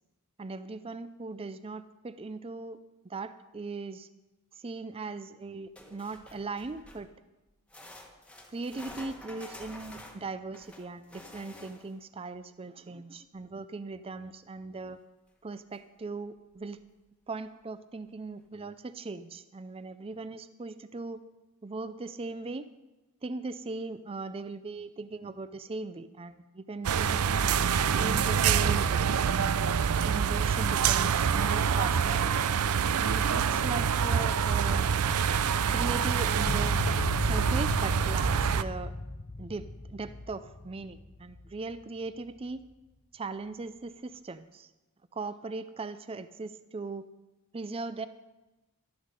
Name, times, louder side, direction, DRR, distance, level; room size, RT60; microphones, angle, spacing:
voice 1, 0.4-2.8 3.0-4.1 4.5-7.1 8.5-15.0 15.4-16.8 17.3-21.2 21.6-22.7 23.2-27.3 28.0-29.6 30.0-32.3 33.0-34.9 35.7-36.8 37.2-38.9 39.4-42.6 43.1-44.7 45.1-47.1 47.5-48.1, right 3 dB, 25° right, 13 dB, 0.4 m, -39 dB
sound 1, 5.8-7.1 7.7-12.0 15.3-15.4 15.7-15.8 16.5-16.6, left 1 dB, 5° left, 1.2 m, -49 dB
sound 2, 26.8-38.6, right 7 dB, 85° right, 0.5 m, -26 dB
sound 3, 36.5-41.8, left 2 dB, 30° left, 0.6 m, -36 dB
12.0 x 11.5 x 5.2 m, 1.1 s
head